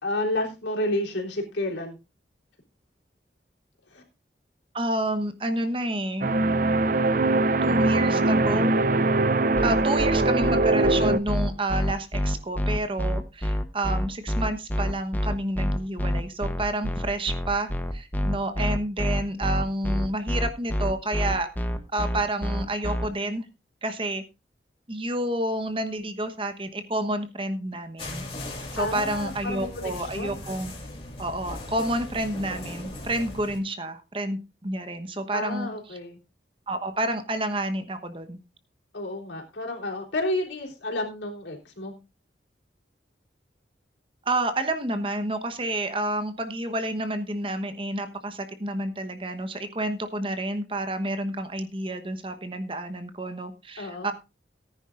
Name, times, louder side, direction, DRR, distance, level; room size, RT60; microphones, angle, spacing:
voice 1, 0.0-2.0 3.9-4.0 28.8-30.4 35.3-36.2 38.9-41.9 53.8-54.1, left 1 dB, 85° left, 1 dB, 3.6 m, -30 dB
voice 2, 4.7-6.3 7.6-8.9 9.6-21.5 21.9-23.5 23.8-24.2 24.9-28.3 28.7-30.7 31.2-36.0 36.7-38.4 44.2-54.1, right 1 dB, 30° right, 8 dB, 1.1 m, -29 dB
sound 1, 6.2-11.2, right 2 dB, 45° right, 0.5 m, -22 dB
sound 2, 9.5-23.1, equal, 10° left, 0.9 m, -27 dB
sound 3, 28.0-33.6, left 1 dB, 30° left, 3.3 m, -38 dB
18.5 x 9.9 x 2.5 m, 0.26 s
head